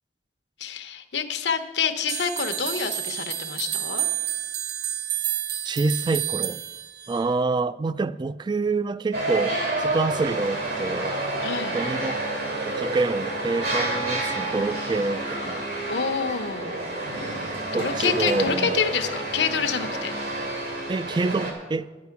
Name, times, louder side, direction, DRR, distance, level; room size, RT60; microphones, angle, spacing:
voice 1, 0.6-4.1 11.4-11.8 15.9-17.2 17.7-20.2, left 6 dB, 80° left, 1.0 m, -27 dB
sound 1, 2.1-7.3, right 11 dB, 60° right, 0.6 m, -30 dB
voice 2, 5.6-6.6 7.1-11.2 11.7-12.2 12.6-15.6 17.7-18.8 20.9-21.9, right 3 dB, 25° right, 0.3 m, -27 dB
sound 2, 9.1-21.5, right 2 dB, 80° right, 2.9 m, -29 dB
11.5 x 9.6 x 5.9 m
head